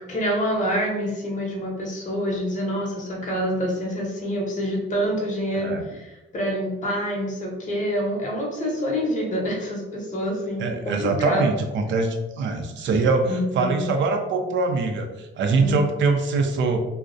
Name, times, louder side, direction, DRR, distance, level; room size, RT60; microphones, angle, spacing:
voice 1, 0.1-11.5 13.3-13.9 15.6-15.8, equal, 40° left, -1 dB, 0.7 m, -26 dB
voice 2, 10.6-16.8, right 4 dB, 70° right, 5 dB, 0.4 m, -23 dB
2.3 x 2.0 x 2.6 m, 1.0 s
cardioid pair, 90°, 20 cm